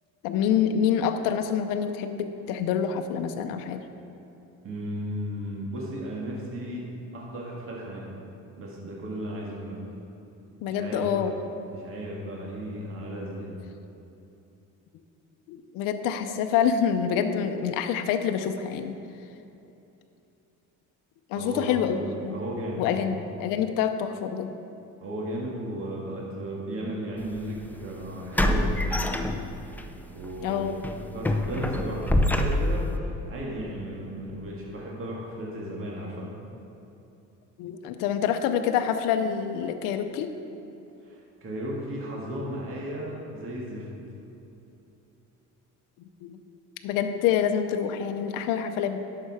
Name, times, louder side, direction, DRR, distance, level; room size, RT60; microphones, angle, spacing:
voice 1, 0.2-3.8 10.6-11.4 15.5-18.9 21.3-22.4 22.8-24.5 30.4-30.7 37.6-40.3 46.2-46.4 46.8-49.0, left 8 dB, 85° left, 7 dB, 0.6 m, -26 dB
voice 2, 4.6-6.9 7.1-8.1 8.6-9.8 10.7-11.3 11.7-13.6 21.3-23.1 25.0-29.3 30.1-36.3 41.0-43.9, equal, 40° right, -4 dB, 2.0 m, -35 dB
sound 1, 27.2-27.4 28.3-29.8 30.2-30.4 30.8-32.9, left 1 dB, 5° left, 0.5 m, -25 dB
11.0 x 6.7 x 4.9 m, 2.9 s
cardioid pair, 115°, 32 cm